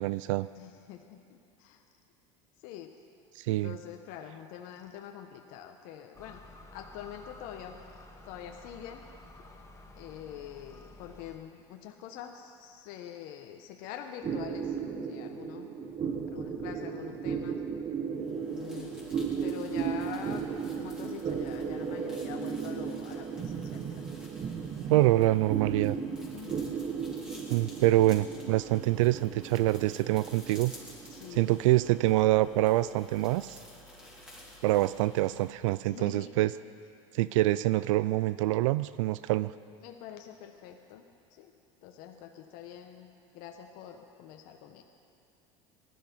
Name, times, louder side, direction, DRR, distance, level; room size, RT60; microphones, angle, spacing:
voice 1, 0.0-0.5 3.4-3.8 24.9-26.0 27.5-30.7 31.4-33.6 34.6-36.5 37.1-39.5, right 16 dB, 80° right, 16 dB, 0.4 m, -25 dB
voice 2, 0.5-1.8 2.6-2.9 3.6-6.4 6.7-7.8 8.2-9.1 9.9-14.8 15.0-15.7 16.3-17.6 18.5-19.1 19.4-20.5 20.8-24.0 26.3-26.6 31.1-31.5 35.8-36.6 39.8-41.0 41.3-41.5 41.8-43.1 43.3-44.8, left 9 dB, 65° left, 4 dB, 1.1 m, -45 dB
sound 1, 6.1-11.4, left 2 dB, 20° left, 1.6 m, -52 dB
sound 2, 14.2-33.0, right 6 dB, 40° right, 1.4 m, -36 dB
sound 3, 18.1-36.0, left 1 dB, 5° right, 4.2 m, -52 dB
19.0 x 12.5 x 5.4 m, 2.7 s
supercardioid pair, 95°, 16 cm